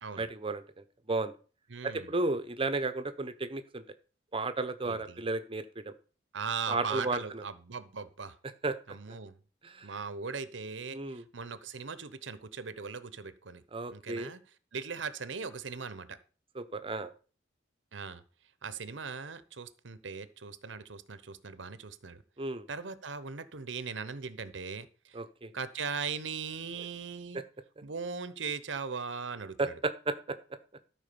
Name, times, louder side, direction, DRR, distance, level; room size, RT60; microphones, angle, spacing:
voice 1, 0.2-0.6 1.1-1.3 1.8-3.8 4.3-5.9 6.7-7.4 8.6-8.8 9.6-9.9 10.9-11.2 13.7-14.3 16.5-17.1 22.4-22.7 25.1-25.5 27.3-27.4 29.6-30.4, right 3 dB, 30° right, 11 dB, 0.9 m, -33 dB
voice 2, 1.7-2.1 4.8-5.2 6.3-8.4 8.9-9.4 9.8-13.6 13.9-14.4 14.7-16.2 17.9-18.2 18.6-22.2 22.7-25.2 25.5-27.4 27.8-29.7, right 5 dB, 80° right, 14 dB, 0.9 m, -39 dB
13.0 x 4.8 x 6.9 m, 0.37 s
head